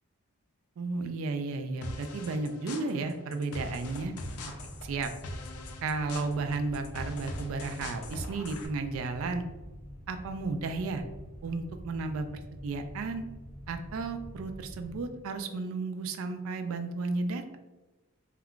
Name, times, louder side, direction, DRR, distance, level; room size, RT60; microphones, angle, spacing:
voice 1, 0.8-4.1 4.8-5.1 5.8-9.4 10.1-11.0 11.4-12.2 12.6-13.2 13.7-17.6, right 3 dB, 70° right, 8 dB, 0.3 m, -33 dB
sound 1, 1.8-8.7, left 2 dB, 80° left, 0.4 m, -42 dB
sound 2, 4.4-15.1, equal, 10° right, 0.9 m, -46 dB
2.2 x 2.2 x 3.6 m, 1.1 s
head